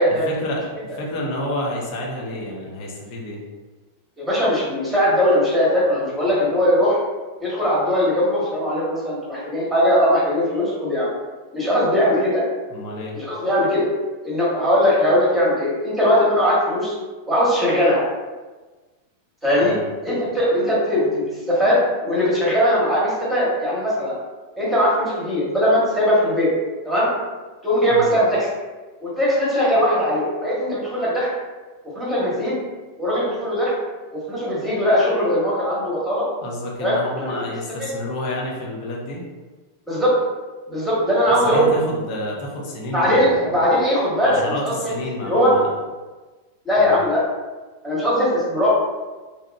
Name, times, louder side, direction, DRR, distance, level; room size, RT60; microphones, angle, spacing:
voice 1, 0.1-3.4 12.7-13.1 19.6-19.8 27.9-28.1 36.4-39.2 41.4-43.5 44.2-45.7 46.8-46.9, left 1 dB, 40° left, -3 dB, 0.7 m, -29 dB
voice 2, 4.2-7.0 7.4-11.1 11.5-12.4 13.1-13.9 14.2-17.0 17.3-18.0 19.4-19.7 20.0-24.1 24.6-26.5 26.8-27.1 27.6-28.5 29.0-31.3 31.9-32.6 33.0-33.7 34.1-36.3 36.8-37.3 37.8-37.9 39.9-40.1 40.7-41.7 42.9-44.9 45.2-45.5 46.6-47.2 47.8-48.7, equal, 5° right, -7 dB, 1.1 m, -20 dB
2.8 x 2.3 x 2.2 m, 1.3 s
figure-of-eight pair, 90°, 0 cm